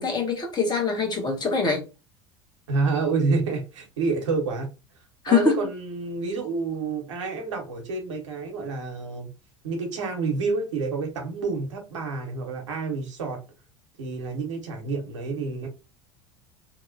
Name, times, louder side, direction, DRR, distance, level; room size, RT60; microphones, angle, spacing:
voice 1, 0.0-1.8 5.2-5.5, left 5 dB, 25° left, 1.0 m, -23 dB
voice 2, 2.7-4.7 5.3-9.3 9.6-13.4 14.0-15.7, right 4 dB, 80° right, 0.9 m, -28 dB
2.7 x 2.1 x 2.6 m
hypercardioid pair, 75°, 15 cm